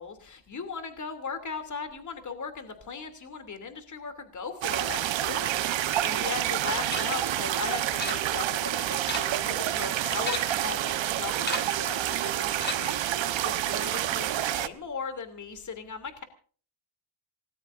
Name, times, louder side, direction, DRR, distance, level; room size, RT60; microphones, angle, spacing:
voice 1, 0.0-16.2, left 5 dB, 35° left, 8 dB, 3.0 m, -38 dB
sound 1, 4.6-14.7, right 12 dB, 65° right, 1.2 m, -28 dB
sound 2, 6.9-7.3 8.0-8.6 8.9-9.5 10.2-10.7 11.4-11.9 12.6-13.1, left 3 dB, 20° left, 2.9 m, -36 dB
26.5 x 19.0 x 2.6 m, 0.42 s
cardioid pair, 105°, 50 cm